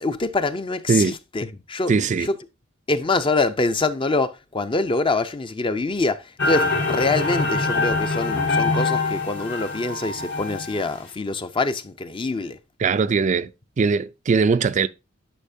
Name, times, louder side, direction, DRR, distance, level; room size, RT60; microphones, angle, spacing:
voice 1, 0.0-2.4 2.9-12.6, left 3 dB, 25° left, 0.5 m, -25 dB
voice 2, 1.9-2.3 12.8-13.5 13.8-14.9, right 5 dB, 40° right, 0.3 m, -20 dB
sound 1, 6.4-10.9, left 3 dB, 60° left, 1.7 m, -24 dB
10.0 x 5.6 x 2.6 m
head